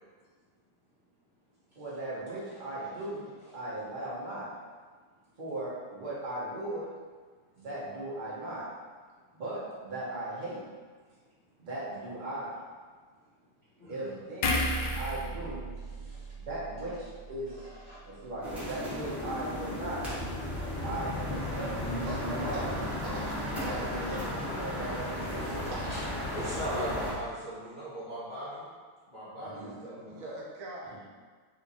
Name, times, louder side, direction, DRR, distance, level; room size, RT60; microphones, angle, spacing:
voice 1, 1.7-4.5 5.4-6.9 7.6-8.7 9.3-10.6 11.6-12.6 13.9-16.0 16.4-17.7 18.2-20.1 20.8-22.7 23.6-24.1 24.6-25.6 29.4-29.7, right 1 dB, 40° right, -7 dB, 0.7 m, -38 dB
voice 2, 13.7-14.1 15.9-16.5 17.4-18.3 25.4-28.7 29.0-30.4, equal, 40° left, -12 dB, 0.7 m, -40 dB
sound 1, 14.4-17.8 18.1-18.3, left 1 dB, 75° left, 1.2 m, -34 dB
sound 2, 18.4-27.1, left 1 dB, ahead, 1.0 m, -34 dB
voice 3, 22.0-22.7 23.0-24.3 25.6-25.8 30.1-31.1, right 2 dB, 80° right, -2 dB, 1.5 m, -43 dB
3.5 x 3.1 x 4.0 m, 1.5 s
omnidirectional pair, 2.3 m